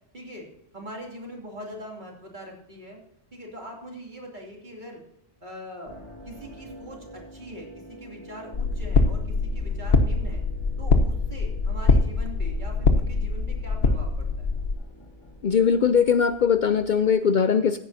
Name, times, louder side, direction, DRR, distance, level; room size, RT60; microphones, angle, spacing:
voice 1, 0.1-0.5 0.7-3.0 3.3-5.0 5.4-6.0 6.2-10.4 10.8-14.5, equal, 50° right, 0 dB, 2.8 m, -42 dB
sound 1, 5.9-17.1, left 1 dB, 30° left, 2.0 m, -47 dB
sound 2, 8.5-14.7, left 3 dB, 75° left, 1.2 m, -23 dB
voice 2, 15.4-17.8, left 7 dB, 55° left, 11 dB, 0.6 m, -20 dB
15.5 x 9.1 x 2.7 m, 0.79 s
omnidirectional pair, 1.1 m